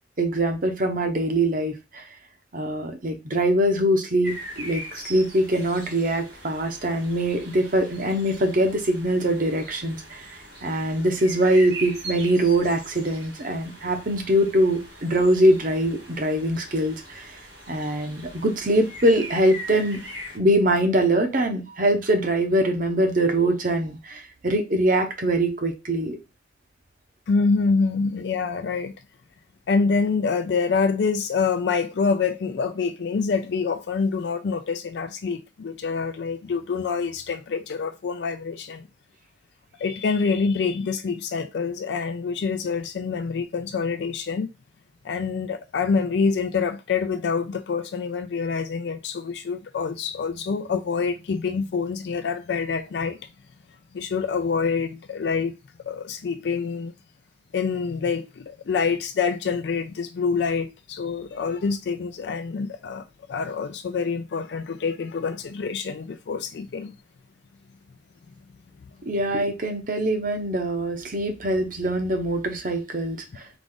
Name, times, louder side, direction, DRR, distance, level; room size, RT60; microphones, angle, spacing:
voice 1, 0.2-2.0 2.5-17.3 17.7-20.0 20.3-26.2 69.0-73.4, right 1 dB, 50° right, 0.9 m, -23 dB
sound 1, 4.2-20.4, right 1 dB, 70° right, 2.3 m, -41 dB
voice 2, 27.3-28.9 29.7-38.9 39.8-44.5 45.0-53.2 53.9-55.5 55.8-56.9 57.5-66.9, left 5 dB, 65° left, 0.4 m, -26 dB
4.8 x 2.4 x 3.8 m
head